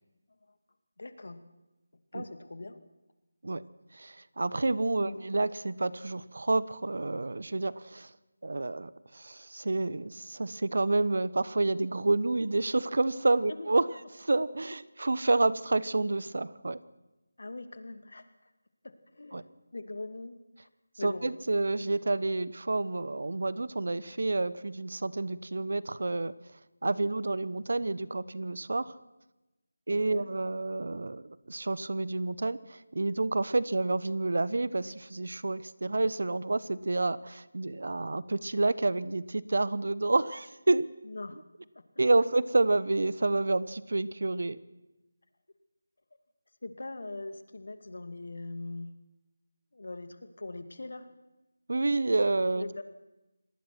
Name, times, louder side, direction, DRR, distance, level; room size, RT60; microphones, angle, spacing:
voice 1, 1.0-1.4 2.1-2.8 5.0-5.2 13.5-13.7 17.4-18.5 18.8-19.5 19.7-20.7 21.0-21.3 29.9-30.3 41.0-41.4 41.7-41.8 46.6-48.9 49.7-51.1 52.5-52.8, left 2 dB, 70° left, 10 dB, 2.4 m, -41 dB
voice 2, 3.9-8.1 8.4-13.9 14.2-16.8 19.3-19.4 21.0-26.3 26.8-28.9 29.9-40.9 42.0-44.6 51.7-52.6, right 2 dB, 70° right, 18 dB, 1.1 m, -29 dB
26.0 x 19.0 x 6.1 m, 1.0 s
figure-of-eight pair, 170°, 0 cm